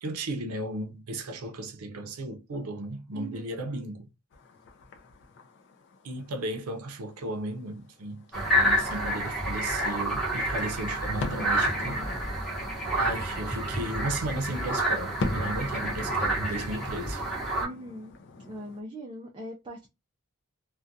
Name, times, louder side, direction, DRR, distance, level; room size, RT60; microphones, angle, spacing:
voice 1, 0.0-4.1 6.0-12.0 13.0-17.2, right 1 dB, 85° right, 0.5 m, -35 dB
voice 2, 3.1-3.5 8.6-8.7 17.6-18.2 18.4-19.9, right 1 dB, 20° right, 0.4 m, -41 dB
sound 1, 4.3-18.8, left 2 dB, 55° left, 0.4 m, -41 dB
sound 2, 8.3-17.7, right 1 dB, ahead, 0.9 m, -29 dB
2.4 x 2.1 x 2.5 m
head